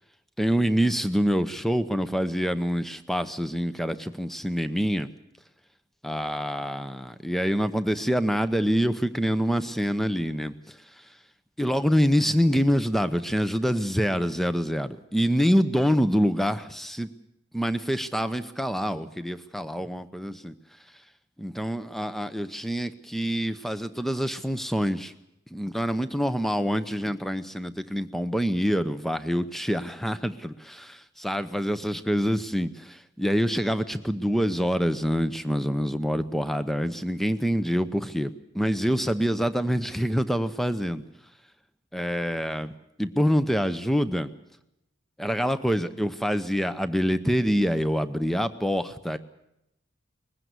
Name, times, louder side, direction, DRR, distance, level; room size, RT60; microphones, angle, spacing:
voice 1, 0.4-5.1 6.0-10.5 11.6-17.1 17.5-20.5 21.4-25.1 25.5-41.0 41.9-42.7 43.0-44.3 45.2-49.2, equal, ahead, 12 dB, 0.7 m, -26 dB
20.5 x 15.5 x 9.6 m, 0.85 s
head